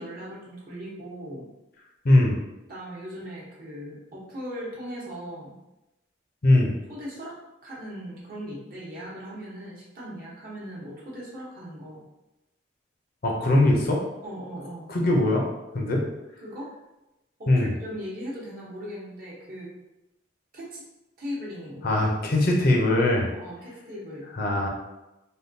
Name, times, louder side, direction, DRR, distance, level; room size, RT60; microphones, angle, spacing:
voice 1, 0.0-1.5 2.7-5.5 6.9-7.3 7.6-12.0 14.2-14.9 16.4-16.7 17.4-19.7 20.5-20.8 21.2-22.0 23.3-24.3, equal, 45° right, -6 dB, 0.9 m, -38 dB
voice 2, 2.0-2.4 6.4-6.7 13.2-14.0 14.9-15.5 15.7-16.0 17.5-17.7 21.8-23.3 24.3-24.7, left 1 dB, 50° left, -1 dB, 0.6 m, -21 dB
3.5 x 2.2 x 2.6 m, 0.96 s
head